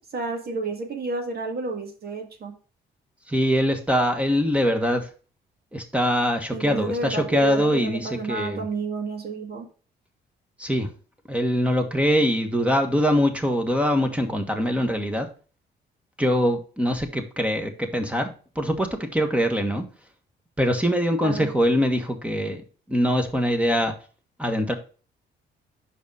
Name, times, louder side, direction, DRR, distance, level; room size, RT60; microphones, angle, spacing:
voice 1, 0.1-2.5 6.5-9.7 21.2-21.5, right 3 dB, 50° right, 4 dB, 1.8 m, -30 dB
voice 2, 3.3-5.1 5.7-8.7 10.6-10.9 11.3-15.3 16.2-19.8 20.6-22.6 22.9-23.9 24.4-24.7, equal, 5° right, 6 dB, 1.4 m, -23 dB
5.5 x 5.0 x 6.2 m, 0.37 s
cardioid pair, 90°, 20 cm